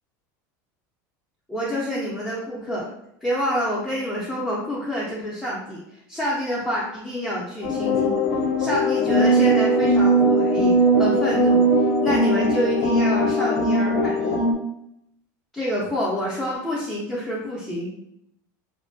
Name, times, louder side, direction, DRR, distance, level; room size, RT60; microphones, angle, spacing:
voice 1, 1.5-2.9 3.2-8.3 8.6-14.4 15.5-17.9, equal, ahead, -6 dB, 0.4 m, -27 dB
sound 1, 7.6-14.5, right 1 dB, 70° left, 0.5 m, -19 dB
2.4 x 2.1 x 2.4 m, 0.78 s
supercardioid pair, 140°, 10 cm